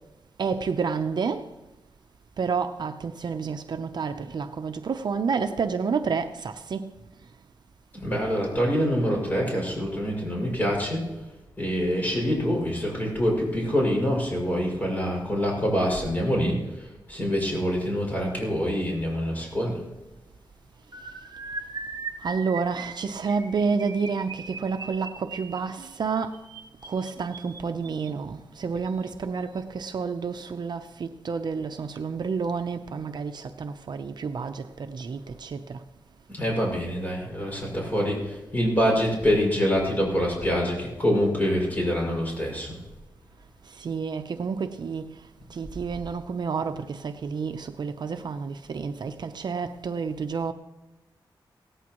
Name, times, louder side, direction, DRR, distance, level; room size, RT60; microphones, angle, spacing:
voice 1, 0.4-1.5 2.4-6.9 22.2-26.4 26.9-35.8 43.7-45.1 45.5-50.5, right 5 dB, 60° right, 0.6 m, -30 dB
voice 2, 7.9-11.1 11.6-19.8 36.3-42.8, equal, 20° left, 6.0 m, -25 dB
sound 1, 20.9-28.1 28.9-29.1 29.4-29.6 29.9-30.1, right 4 dB, 45° right, 1.9 m, -39 dB
17.5 x 14.5 x 3.0 m
wide cardioid pair, 130°, 8 cm